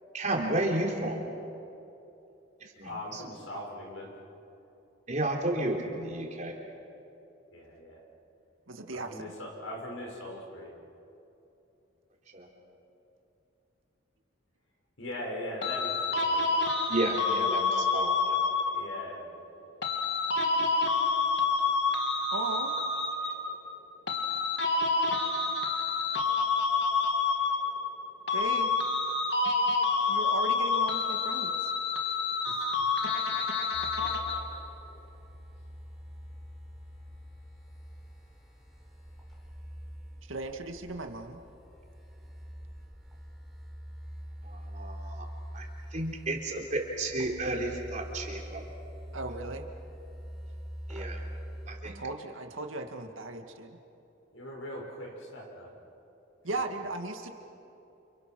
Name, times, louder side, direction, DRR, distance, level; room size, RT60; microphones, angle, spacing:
voice 1, 0.1-1.3 2.8-3.2 5.1-6.5 12.3-12.5 16.9-18.4 44.5-45.2 45.5-45.6 45.9-48.6 50.9-51.2 51.7-52.0, right 1 dB, 35° right, 0 dB, 3.8 m, -32 dB
voice 2, 2.8-4.1 7.5-8.0 8.9-10.7 15.0-16.5 18.7-19.3 32.5-32.7 54.3-55.7 56.5-56.6, left 1 dB, 85° left, 0 dB, 6.2 m, -40 dB
voice 3, 8.7-9.3 22.3-22.8 28.3-28.8 30.1-31.7 40.3-41.4 49.1-49.7 51.8-53.8 56.4-57.3, right 2 dB, 90° right, 5 dB, 2.1 m, -37 dB
sound 1, 15.6-19.0 19.8-23.6 24.1-28.0 28.3-34.6, left 4 dB, 60° left, 2.5 m, -28 dB
sound 2, 33.7-51.8, equal, ahead, 4.5 m, -44 dB
30.0 x 29.0 x 6.2 m, 2.9 s
head